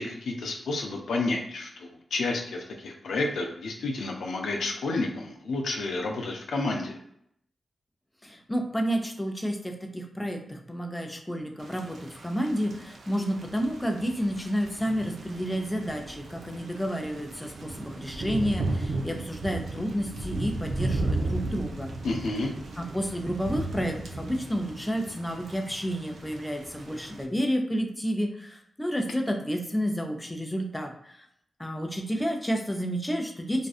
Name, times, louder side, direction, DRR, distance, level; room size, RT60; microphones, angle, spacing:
voice 1, 0.0-7.0 22.0-22.5, left 2 dB, 85° left, 1 dB, 0.4 m, -30 dB
voice 2, 8.2-21.9 22.8-31.3 31.6-33.7, equal, 10° left, 3 dB, 0.5 m, -30 dB
Thunder / Rain, 11.6-27.3, right 2 dB, 75° right, 0.3 m, -35 dB
2.5 x 2.3 x 2.4 m, 0.71 s
cardioid pair, 45°, 0 cm